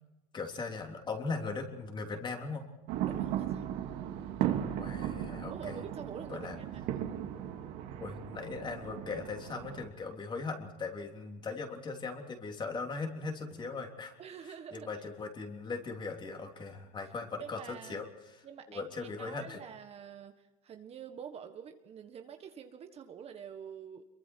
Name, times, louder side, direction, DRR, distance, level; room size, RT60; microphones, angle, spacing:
voice 1, 0.3-2.7 4.8-5.8 6.3-6.6 8.0-14.1 14.7-18.0 18.7-19.6, left 4 dB, 25° left, 3 dB, 3.4 m, -39 dB
sound 1, 2.9-9.8, right 11 dB, 60° right, 2.9 m, -36 dB
voice 2, 3.0-3.7 5.5-6.9 14.2-14.9 17.4-18.0 18.4-24.1, right 7 dB, 30° right, 7 dB, 1.5 m, -47 dB
26.0 x 23.5 x 4.6 m, 1.1 s
supercardioid pair, 135°, 20 cm